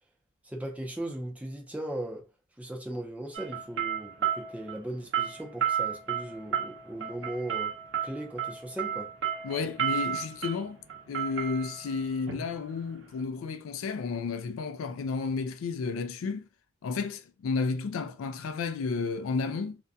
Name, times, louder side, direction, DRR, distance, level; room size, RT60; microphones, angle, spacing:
voice 1, 0.4-2.2 2.6-7.7 8.0-9.1, right 1 dB, 5° right, 0.4 m, -38 dB
sound 1, 3.3-13.2, right 9 dB, 65° right, 0.7 m, -33 dB
voice 2, 9.4-10.8 11.1-16.5 16.8-19.8, left 4 dB, 75° left, 0.3 m, -32 dB
2.4 x 2.1 x 2.6 m
head